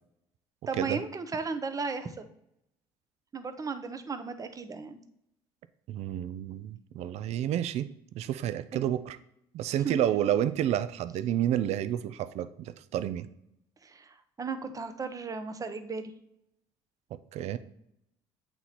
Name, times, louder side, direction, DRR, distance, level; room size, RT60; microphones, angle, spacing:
voice 1, 0.7-2.3 3.3-5.0 8.7-8.8 9.8-10.2 13.8-16.1, right 4 dB, 30° right, 9 dB, 0.7 m, -35 dB
voice 2, 5.9-7.9 8.1-9.2 9.5-13.3 17.3-17.6, right 11 dB, 65° right, 12 dB, 0.4 m, -30 dB
8.1 x 3.0 x 4.1 m, 0.76 s
supercardioid pair, 75°, 12 cm